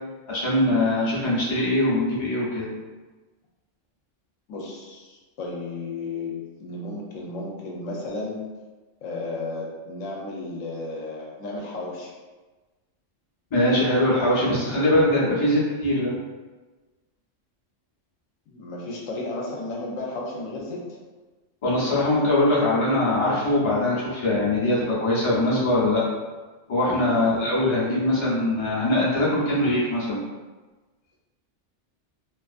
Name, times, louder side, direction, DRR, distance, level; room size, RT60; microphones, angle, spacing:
voice 1, 0.3-2.7 13.5-16.2 21.6-26.0 26.7-30.2, left 1 dB, 35° left, -7 dB, 0.6 m, -22 dB
voice 2, 4.5-8.4 9.0-12.1 18.5-20.9 27.1-27.3, left 2 dB, 85° left, -2 dB, 1.0 m, -33 dB
2.4 x 2.4 x 2.4 m, 1.3 s
omnidirectional pair, 1.3 m